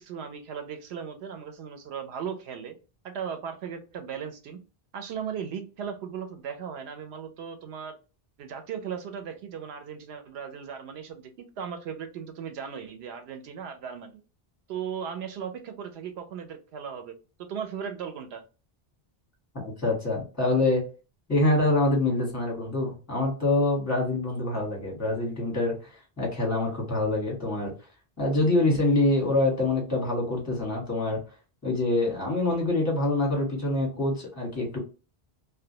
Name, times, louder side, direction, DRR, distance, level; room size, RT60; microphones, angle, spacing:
voice 1, 0.0-2.8 3.0-4.6 4.9-8.0 8.4-14.2 14.7-18.4, right 7 dB, 90° right, 7 dB, 0.8 m, -37 dB
voice 2, 19.6-20.8 21.3-27.7 28.2-31.2 31.6-34.8, left 2 dB, 15° left, -2 dB, 1.1 m, -25 dB
2.2 x 2.1 x 2.7 m, 0.33 s
omnidirectional pair, 1.0 m